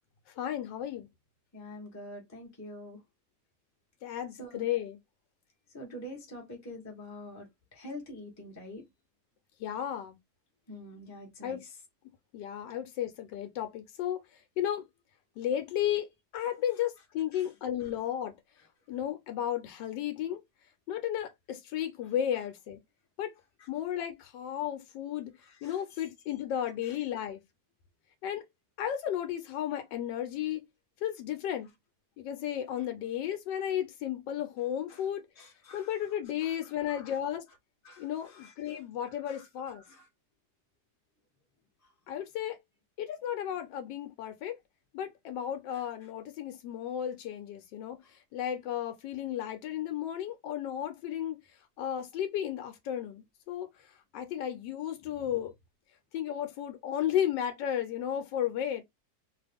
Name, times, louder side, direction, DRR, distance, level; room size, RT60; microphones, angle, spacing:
voice 1, 0.4-1.1 4.0-5.0 9.6-10.2 11.4-11.6 12.3-14.2 14.6-14.8 15.4-18.3 18.9-20.4 20.9-22.8 23.2-23.3 23.7-25.3 25.6-27.4 28.2-28.4 28.8-30.6 31.0-31.7 32.2-35.2 35.7-37.5 38.0-39.8 42.1-42.6 43.0-44.5 44.9-48.0 48.3-51.4 51.8-53.7 54.1-55.5 56.1-58.8, left 10 dB, 80° left, 1.2 m, -33 dB
voice 2, 1.5-3.0 4.4-4.6 5.7-8.8 10.7-11.6 17.3-17.5 25.4-25.8 26.8-26.9 34.9-35.0 35.4-35.9 36.6-37.2 37.8-40.1, left 1 dB, 15° left, 0.7 m, -46 dB
2.9 x 2.4 x 3.4 m
omnidirectional pair, 1.9 m